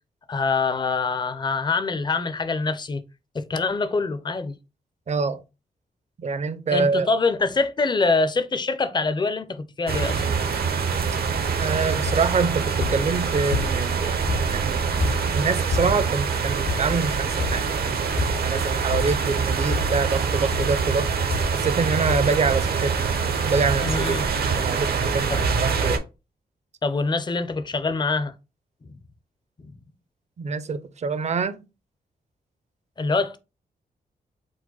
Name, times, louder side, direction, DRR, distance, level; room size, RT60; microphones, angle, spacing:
voice 1, 0.3-3.0 3.3-4.6 6.7-10.2 23.8-24.3 25.3-25.4 26.8-28.3 29.6-29.7 33.0-33.4, left 3 dB, 25° left, 0.5 m, -24 dB
voice 2, 5.1-5.4 6.2-7.1 11.6-14.2 14.5-21.1 21.5-22.9 23.5-24.2 24.6-26.0 30.4-31.6, right 4 dB, 45° right, 0.5 m, -26 dB
sound 1, 9.9-26.0, right 5 dB, 70° right, 0.7 m, -25 dB
sound 2, 12.1-12.4 12.8-13.9 14.3-16.2 16.7-17.1 17.4-17.8 18.2-18.6 18.9-19.4 19.7-20.1 20.5-20.8 21.3-21.8 22.1-22.4 23.2-23.3 23.5-23.6, left 4 dB, 80° left, 0.7 m, -30 dB
4.8 x 2.1 x 3.9 m
cardioid pair, 90°, 16 cm